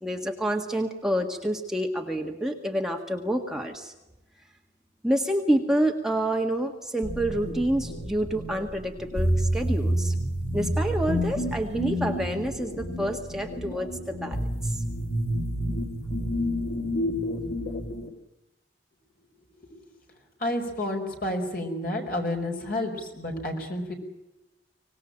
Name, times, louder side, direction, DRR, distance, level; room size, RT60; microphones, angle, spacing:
voice 1, 0.0-3.9 5.0-10.1 10.5-14.8, right 1 dB, 5° right, 2 dB, 1.6 m, -28 dB
sound 1, 7.0-18.1, equal, 70° left, 2.9 m, -29 dB
voice 2, 20.4-23.9, left 1 dB, 50° left, 2 dB, 5.2 m, -30 dB
25.0 x 19.0 x 8.9 m, 0.98 s
head